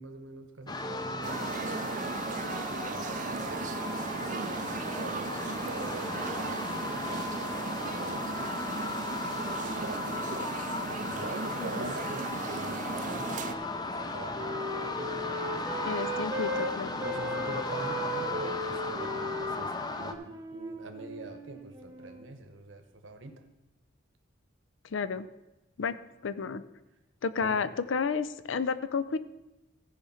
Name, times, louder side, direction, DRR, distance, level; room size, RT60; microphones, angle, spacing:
voice 1, 0.0-2.2 2.8-9.0 9.6-10.5 11.0-15.4 17.0-23.4 27.4-27.6, right 2 dB, 80° right, 6 dB, 1.1 m, -45 dB
sound 1, 0.7-20.1, left 3 dB, 20° left, 0.5 m, -36 dB
sound 2, 1.2-13.5, right 5 dB, 40° right, 0.4 m, -36 dB
voice 2, 11.6-11.9 15.8-17.0 24.9-25.3 25.8-26.0 26.2-26.6 27.2-29.2, left 5 dB, 80° left, 14 dB, 0.5 m, -31 dB
Wind instrument woodwind instrument, 11.8-16.7 17.0-22.3, right 1 dB, 20° right, 0.9 m, -38 dB
14.5 x 5.0 x 5.6 m, 0.99 s
head